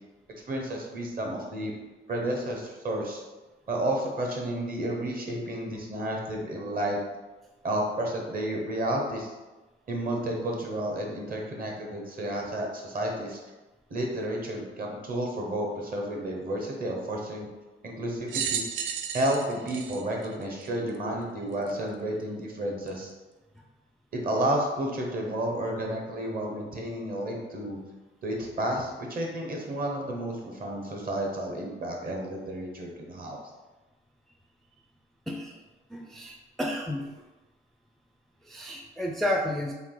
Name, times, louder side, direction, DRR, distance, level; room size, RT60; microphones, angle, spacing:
voice 1, 0.5-1.7 2.1-3.2 3.7-7.0 7.6-9.3 9.9-13.4 13.9-17.5 17.8-18.7 19.1-23.1 24.1-27.8 28.2-33.4, right 1 dB, 45° right, 1 dB, 1.0 m, -31 dB
sound 1, 18.3-21.0 21.7-21.8 22.9-23.0, right 7 dB, 80° right, 0.4 m, -33 dB
voice 2, 35.3-35.6 35.9-37.2 38.4-39.7, left 1 dB, ahead, 1 dB, 0.3 m, -31 dB
3.6 x 2.6 x 3.8 m, 1.1 s
cardioid pair, 90°, 20 cm